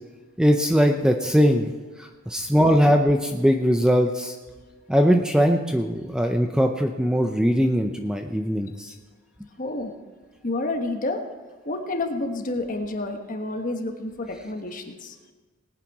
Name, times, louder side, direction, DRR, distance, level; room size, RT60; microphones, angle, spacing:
voice 1, 0.4-1.7 2.0-4.4 4.9-8.9, equal, 5° right, 4 dB, 0.6 m, -20 dB
voice 2, 9.6-9.9 10.4-11.2 11.6-15.2, left 2 dB, 40° left, 4 dB, 1.2 m, -29 dB
19.5 x 9.0 x 4.8 m, 1.3 s
head